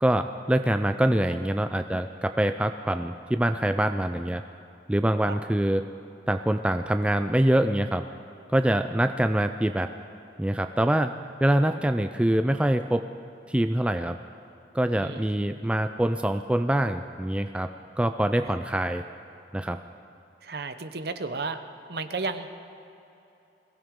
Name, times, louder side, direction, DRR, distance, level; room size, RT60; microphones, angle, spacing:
voice 1, 0.0-4.4 4.9-5.8 6.3-8.0 8.5-9.9 10.4-11.1 11.4-13.0 13.5-14.2 14.7-17.7 18.0-19.0 19.5-19.8, right 1 dB, 5° right, 8 dB, 0.3 m, -24 dB
voice 2, 20.4-21.6 21.9-22.5, right 3 dB, 60° right, 9 dB, 0.8 m, -33 dB
22.0 x 16.0 x 3.7 m, 2.9 s
head